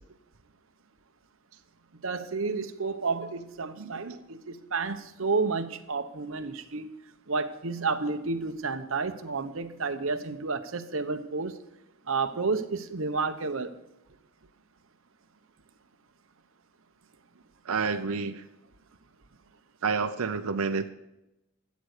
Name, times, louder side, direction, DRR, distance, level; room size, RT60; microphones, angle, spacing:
voice 1, 2.0-6.9 7.3-11.6 12.1-13.7, right 4 dB, 65° right, 9 dB, 1.0 m, -31 dB
voice 2, 3.8-4.2 17.6-18.4 19.8-20.9, right 5 dB, 85° right, 6 dB, 0.6 m, -29 dB
13.5 x 8.4 x 6.6 m, 0.92 s
head